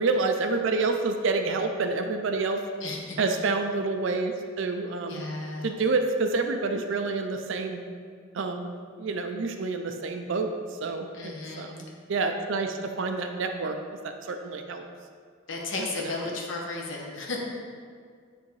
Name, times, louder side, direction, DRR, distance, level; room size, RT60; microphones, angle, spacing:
voice 1, 0.0-2.6 3.2-5.2 5.6-7.8 8.3-10.5 10.8-13.8 14.0-14.8 15.8-16.4, right 3 dB, 65° right, 6 dB, 0.4 m, -28 dB
voice 2, 2.8-3.2 5.1-5.7 11.1-11.7 15.5-17.4, left 3 dB, 65° left, -2 dB, 0.9 m, -34 dB
10.0 x 3.4 x 3.2 m, 2.1 s
head